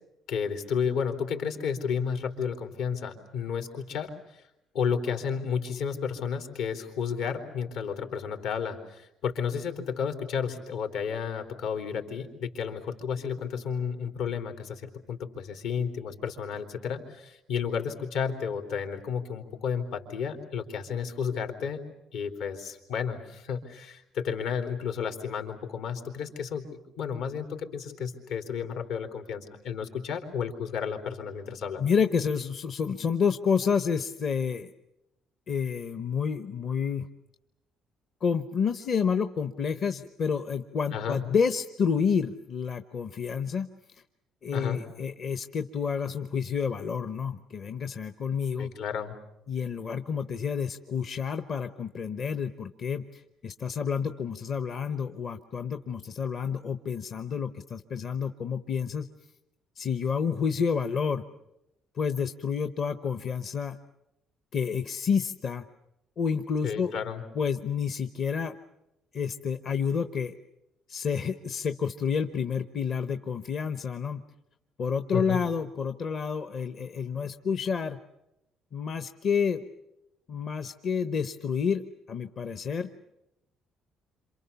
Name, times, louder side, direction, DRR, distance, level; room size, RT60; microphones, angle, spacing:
voice 1, 0.3-4.4 4.7-21.8 22.1-26.7 27.0-31.8 40.9-41.2 44.5-44.8 48.6-49.1 66.6-67.2 75.1-75.4, left 6 dB, 70° left, 5 dB, 3.8 m, -32 dB
voice 2, 31.8-34.7 35.5-37.1 38.2-43.7 44.4-48.7 49.5-59.1 59.8-61.2 62.0-63.8 64.5-65.6 66.2-66.9 67.3-68.5 69.1-70.3 70.9-74.2 74.8-78.0 78.7-79.6 80.3-81.8 82.1-82.9, left 6 dB, 35° left, 9 dB, 0.9 m, -29 dB
27.5 x 27.0 x 7.0 m, 0.88 s
cardioid pair, 175°, 0 cm